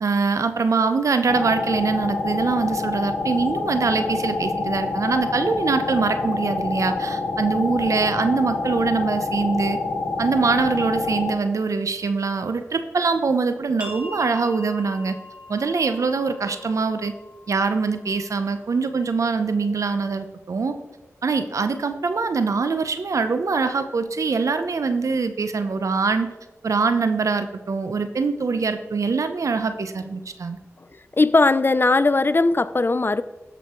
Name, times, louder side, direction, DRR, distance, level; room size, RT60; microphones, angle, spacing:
voice 1, 0.0-9.8 10.2-15.1 15.5-17.1 17.5-20.7 21.2-26.3 26.6-30.6, right 4 dB, 75° right, 0.8 m, -23 dB
sound 1, 1.3-11.3, left 3 dB, 70° left, 2.5 m, -27 dB
sound 2, 13.8-19.2, left 2 dB, 20° right, 1.7 m, -42 dB
voice 2, 31.2-33.2, left 3 dB, 40° left, 0.5 m, -18 dB
13.0 x 5.2 x 4.5 m
cardioid pair, 40°, 5 cm